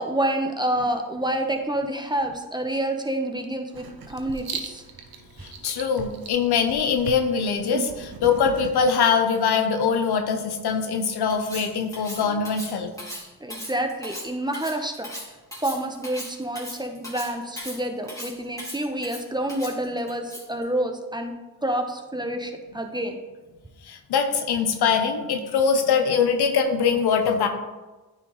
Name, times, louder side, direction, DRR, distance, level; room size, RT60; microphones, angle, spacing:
voice 1, 0.0-4.8 13.4-15.1 15.6-21.3 21.6-23.2, right 1 dB, 10° right, 4 dB, 1.0 m, -28 dB
Writing, 3.7-8.9, right 6 dB, 65° right, 0.9 m, -37 dB
voice 2, 5.4-12.9 23.8-27.5, left 6 dB, 85° left, 6 dB, 0.8 m, -23 dB
Cutlery silverware, 11.3-20.6, left 1 dB, 10° left, 2.3 m, -38 dB
9.4 x 4.4 x 3.1 m, 1.2 s
supercardioid pair, 40°, 38 cm